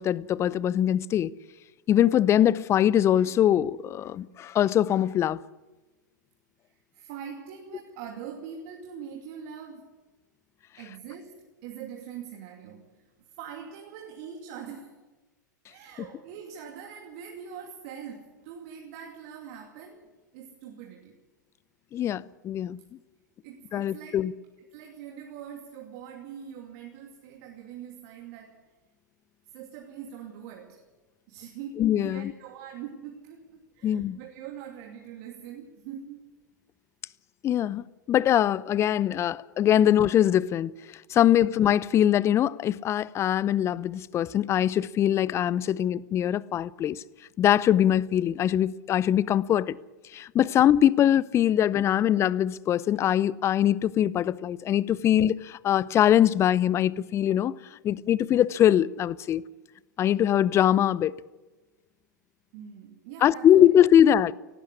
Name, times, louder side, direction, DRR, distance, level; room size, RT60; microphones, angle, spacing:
voice 1, 0.0-1.3 1.9-5.4 21.9-22.8 23.7-24.3 31.8-32.3 33.8-34.2 37.4-40.7 41.1-47.0 47.4-49.8 50.1-57.5 57.8-59.4 60.0-61.1 63.2-64.3, left 11 dB, 25° left, 0.6 m, -22 dB
voice 2, 6.7-9.9 10.7-13.1 13.4-15.0 15.7-21.2 22.0-22.1 23.4-24.2 24.7-28.6 29.5-30.8 31.3-36.2 62.5-63.6, right 8 dB, 50° right, 2.7 m, -43 dB
18.0 x 15.5 x 9.8 m
figure-of-eight pair, 100°, 10 cm